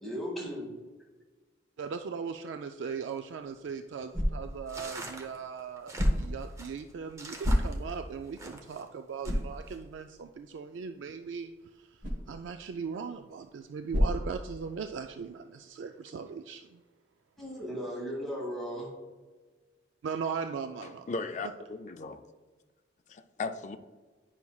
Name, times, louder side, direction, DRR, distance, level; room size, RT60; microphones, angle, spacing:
voice 1, 0.0-0.7 17.4-18.9, equal, ahead, -5 dB, 1.6 m, -36 dB
voice 2, 1.8-16.8 20.0-21.1, right 6 dB, 85° right, 7 dB, 0.3 m, -39 dB
sound 1, 3.3-15.0, equal, 45° right, 1.1 m, -34 dB
sound 2, 4.7-8.8 9.2-9.8, right 2 dB, 15° right, 0.7 m, -44 dB
voice 3, 21.1-22.2 23.1-23.8, left 3 dB, 40° left, 8 dB, 0.4 m, -36 dB
9.6 x 5.8 x 2.3 m, 1.3 s
head